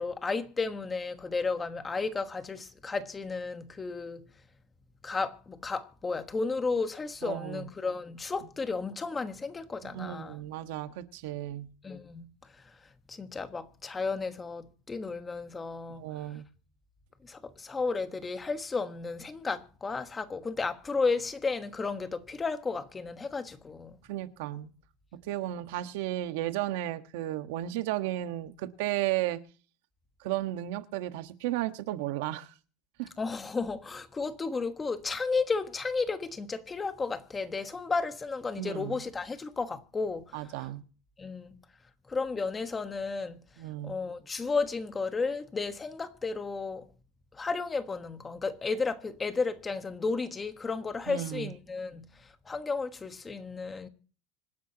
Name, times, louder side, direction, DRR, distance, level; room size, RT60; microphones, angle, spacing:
voice 1, 0.0-4.2 5.0-10.4 11.8-12.8 13.1-16.0 17.2-24.0 33.2-40.7 41.2-41.6 42.1-43.4 43.8-46.9 47.3-53.9, left 4 dB, 15° left, 1.3 m, -33 dB
voice 2, 7.2-7.7 9.9-11.7 15.9-16.4 24.1-24.7 25.2-29.4 30.2-32.5 33.0-33.1 38.6-39.0 40.3-40.8 43.6-44.0 51.1-51.5, right 14 dB, 70° right, 1.3 m, -34 dB
26.0 x 10.5 x 2.9 m
supercardioid pair, 155°, 0 cm